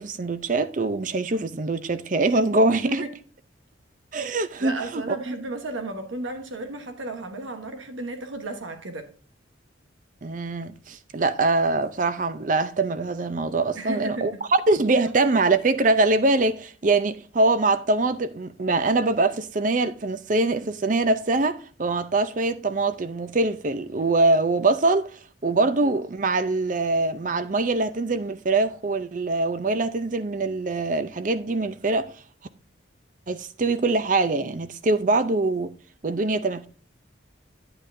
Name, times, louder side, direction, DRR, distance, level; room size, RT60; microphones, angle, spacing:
voice 1, 0.0-3.0 4.1-5.4 10.2-25.1 25.4-32.1 33.3-35.7 36.0-36.7, right 3 dB, 40° right, 0.5 m, -23 dB
voice 2, 4.6-9.1 13.7-14.4, right 2 dB, 85° right, 1.1 m, -34 dB
9.7 x 8.8 x 2.6 m
head